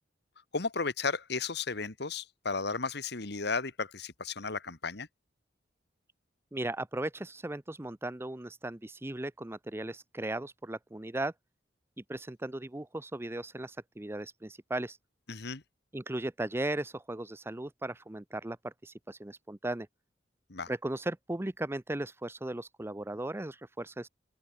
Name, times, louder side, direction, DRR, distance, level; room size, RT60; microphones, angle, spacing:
voice 1, 0.5-5.1 15.3-15.6 20.5-20.7, left 4 dB, 65° left, 1.8 m, -34 dB
voice 2, 6.5-11.3 12.1-15.0 15.9-19.9 20.7-24.1, right 1 dB, 15° right, 0.6 m, -37 dB
open air
head